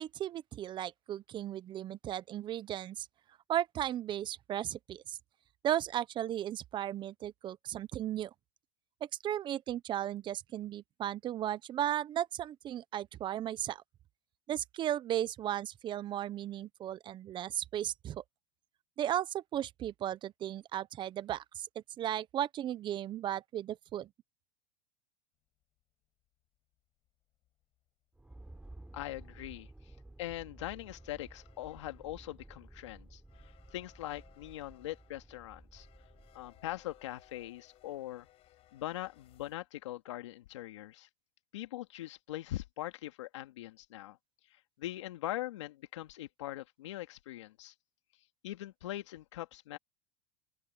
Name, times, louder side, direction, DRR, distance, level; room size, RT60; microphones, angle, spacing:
voice 1, 0.0-3.1 3.5-5.2 5.6-8.3 9.2-13.8 14.5-18.2 19.0-24.1, right 11 dB, 30° right, 0.9 m, -35 dB
sound 1, 25.6-25.8 26.5-26.6 26.7-26.8 27.1-39.6, left 14 dB, 40° left, 5.3 m, -66 dB
sound 2, 28.1-37.7, right 2 dB, 5° right, 3.8 m, -54 dB
voice 2, 28.9-29.7 30.2-35.9 36.3-38.3 38.7-41.1 41.5-44.2 44.8-47.7 48.4-49.8, left 15 dB, 85° left, 2.3 m, -42 dB
open air
supercardioid pair, 120°, 15 cm